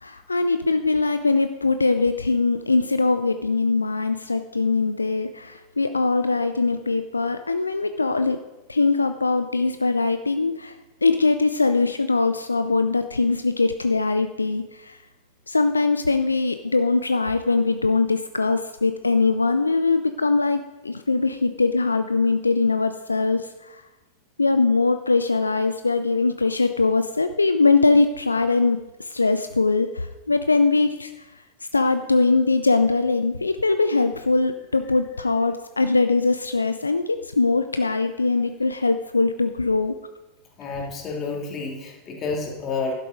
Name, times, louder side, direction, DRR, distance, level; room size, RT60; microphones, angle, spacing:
voice 1, 0.0-8.4 8.7-10.8 11.0-15.0 15.5-23.8 24.4-31.1 31.7-40.0, left 3 dB, 80° left, 9 dB, 0.4 m, -22 dB
voice 2, 40.6-42.9, left 4 dB, 30° left, 0 dB, 2.5 m, -29 dB
11.5 x 7.5 x 5.1 m, 1.1 s
figure-of-eight pair, 90°, 0 cm